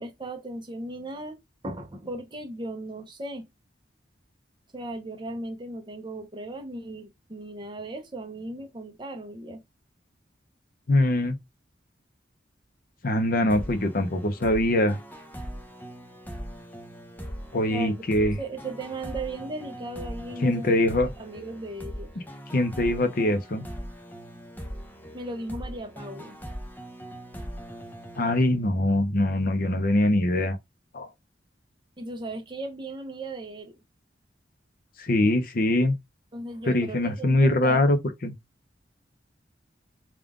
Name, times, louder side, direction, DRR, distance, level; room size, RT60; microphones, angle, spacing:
voice 1, 0.0-1.4 1.6-3.5 4.7-9.6 17.7-18.0 18.4-20.8 21.2-22.1 25.1-26.4 32.0-33.7 36.3-37.9, right 2 dB, 25° right, 0.8 m, -36 dB
voice 2, 10.9-11.4 13.0-15.0 17.5-18.4 20.4-21.1 22.5-23.7 28.2-30.6 30.9-31.1 35.0-35.9 36.7-38.0 38.2-38.3, left 1 dB, 55° left, 0.7 m, -23 dB
sound 1, 13.5-28.9, equal, 10° left, 0.6 m, -40 dB
3.7 x 2.4 x 3.6 m
head